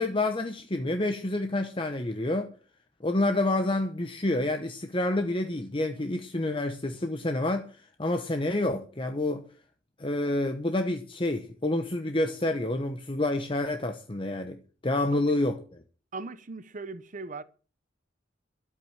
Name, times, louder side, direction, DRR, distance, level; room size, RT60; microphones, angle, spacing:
voice 1, 0.0-2.5 3.0-9.4 10.0-14.6 14.8-15.8, left 2 dB, 25° left, 1.0 m, -28 dB
voice 2, 16.1-17.4, right 3 dB, 40° right, 1.0 m, -39 dB
12.5 x 8.5 x 7.2 m
head